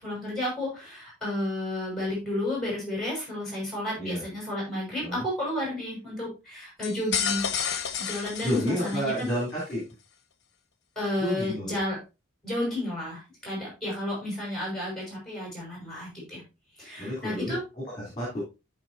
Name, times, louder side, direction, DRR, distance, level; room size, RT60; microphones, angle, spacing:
voice 1, 0.0-7.4 8.0-9.3 11.0-12.0 12.4-16.4 16.8-17.6, left 1 dB, ahead, -3 dB, 6.0 m, -32 dB
sound 1, 6.8-9.4, left 8 dB, 55° left, 1.1 m, -31 dB
voice 2, 8.4-9.8 11.2-11.8 17.0-18.4, equal, 20° left, -4 dB, 3.5 m, -30 dB
14.0 x 5.2 x 2.8 m, 0.27 s
head